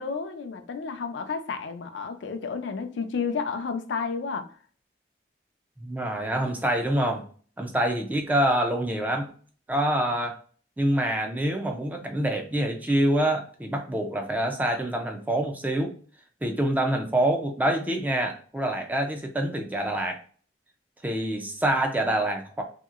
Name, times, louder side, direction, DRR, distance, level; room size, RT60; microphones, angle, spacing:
voice 1, 0.0-4.5, left 5 dB, 85° left, 0.4 m, -31 dB
voice 2, 5.8-7.2 7.6-9.3 9.7-10.4 10.8-15.9 16.4-20.2 21.0-22.6, right 1 dB, 10° right, 0.3 m, -26 dB
2.8 x 2.8 x 2.4 m
head